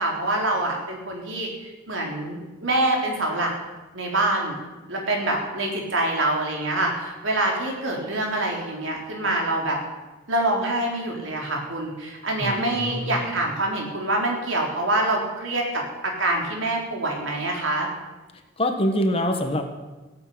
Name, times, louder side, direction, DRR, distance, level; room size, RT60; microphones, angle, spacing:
voice 1, 0.0-3.5 3.9-4.6 4.9-9.8 10.3-17.9, right 2 dB, 70° right, 0 dB, 4.0 m, -25 dB
voice 2, 12.4-13.3 18.3-19.6, equal, 30° left, 5 dB, 1.5 m, -25 dB
17.0 x 8.6 x 8.7 m, 1.2 s
head